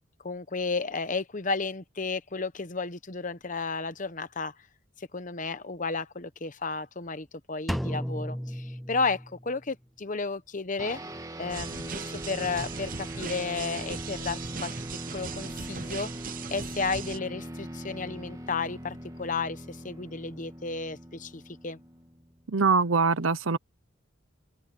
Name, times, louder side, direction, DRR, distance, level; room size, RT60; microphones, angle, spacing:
voice 1, 0.2-4.5 5.0-11.0 11.4-14.7 15.1-16.1 16.5-21.8, left 4 dB, 40° left, 1.0 m, -33 dB
Drum, 7.7-9.6, equal, ahead, 0.5 m, -34 dB
sound 1, 10.8-22.5, right 1 dB, 20° right, 2.0 m, -41 dB
sound 2, 11.5-17.2, right 6 dB, 45° right, 0.8 m, -39 dB
voice 2, 22.5-23.6, right 4 dB, 85° right, 0.9 m, -23 dB
head